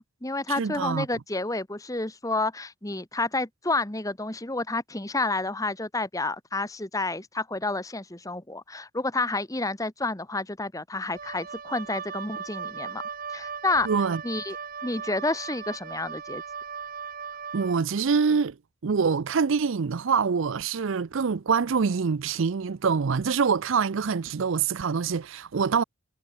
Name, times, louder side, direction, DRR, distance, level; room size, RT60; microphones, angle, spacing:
voice 1, 0.0-13.0 13.3-13.9 14.2-14.6 14.8-16.4, left 2 dB, 15° left, 1.4 m, -30 dB
voice 2, 0.6-1.1 13.8-14.2 17.5-18.5 18.8-25.8, right 5 dB, 70° right, 0.5 m, -25 dB
Wind instrument woodwind instrument, 11.1-17.8, right 6 dB, 45° right, 1.1 m, -38 dB
head